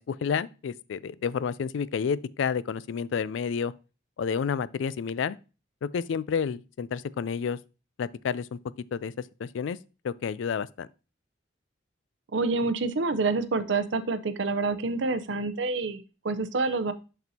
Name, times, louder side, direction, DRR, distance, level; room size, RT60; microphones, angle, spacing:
voice 1, 0.0-3.7 4.2-5.4 5.8-7.6 8.0-8.6 8.9-9.8 10.0-10.9, left 6 dB, 80° left, 0.3 m, -30 dB
voice 2, 12.3-16.9, right 3 dB, 70° right, 0.6 m, -27 dB
6.7 x 6.1 x 2.8 m
head